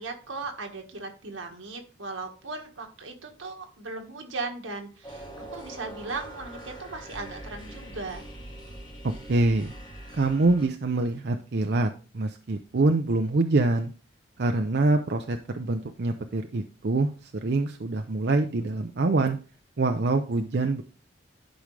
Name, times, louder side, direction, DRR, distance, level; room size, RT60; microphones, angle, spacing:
voice 1, 0.0-8.2, right 3 dB, 80° right, 3 dB, 1.6 m, -37 dB
sound 1, 5.0-10.7, right 1 dB, 25° left, 2.6 m, -43 dB
voice 2, 9.0-9.7 10.1-13.9 14.4-19.4 19.8-20.8, right 2 dB, 55° right, 6 dB, 0.5 m, -25 dB
11.5 x 5.1 x 3.3 m, 0.36 s
head